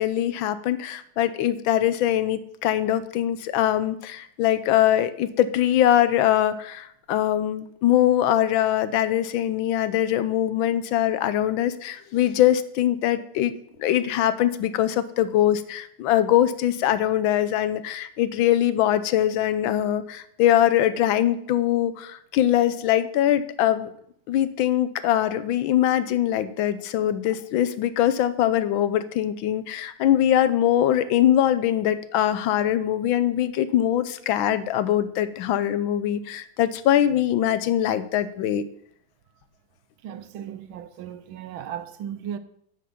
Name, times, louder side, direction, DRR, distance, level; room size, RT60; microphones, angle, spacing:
voice 1, 0.0-13.5 13.8-23.9 24.3-38.6, left 11 dB, 80° left, 1.4 m, -22 dB
voice 2, 40.0-42.4, right 9 dB, 80° right, 1.5 m, -36 dB
10.0 x 5.0 x 6.7 m
omnidirectional pair, 2.2 m